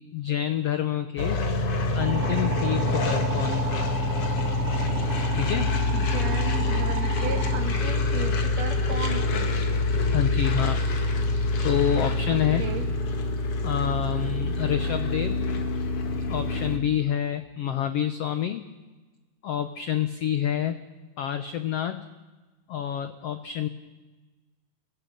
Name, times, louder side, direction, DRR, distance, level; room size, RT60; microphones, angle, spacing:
voice 1, 0.1-1.4 1.9-3.9 5.3-5.7 10.1-10.8 11.6-12.7 13.6-15.4 16.3-18.7 19.4-20.8 21.2-22.1 22.7-23.7, left 10 dB, 85° left, 10 dB, 1.3 m, -28 dB
sound 1, 1.2-16.8, left 2 dB, 45° left, 2.5 m, -26 dB
sound 2, 2.0-7.6, right 6 dB, 85° right, 4.1 m, -35 dB
voice 2, 5.9-9.5 12.3-12.9, right 6 dB, 55° right, 7 dB, 2.5 m, -35 dB
29.5 x 22.0 x 5.5 m, 1.2 s
omnidirectional pair, 4.0 m